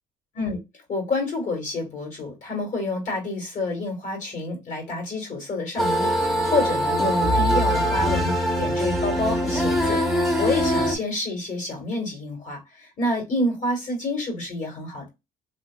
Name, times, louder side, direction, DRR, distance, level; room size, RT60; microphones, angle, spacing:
voice 1, 0.9-15.1, left 2 dB, 50° left, 1.6 m, -28 dB
sound 1, 5.8-11.0, equal, ahead, 0.7 m, -22 dB
2.9 x 2.7 x 2.2 m
cardioid pair, 110°, 17 cm